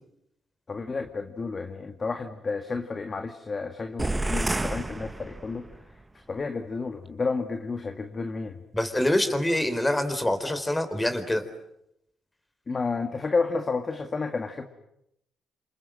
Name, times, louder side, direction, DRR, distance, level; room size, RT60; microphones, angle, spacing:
voice 1, 0.7-5.7 6.1-8.6 12.7-14.6, left 4 dB, 35° left, 6 dB, 2.1 m, -31 dB
sound 1, 4.0-5.8, right 2 dB, 15° right, 1.0 m, -30 dB
voice 2, 8.7-11.4, left 1 dB, 10° left, 10 dB, 4.1 m, -25 dB
28.0 x 27.5 x 7.7 m, 0.81 s
cardioid pair, 90°, 0 cm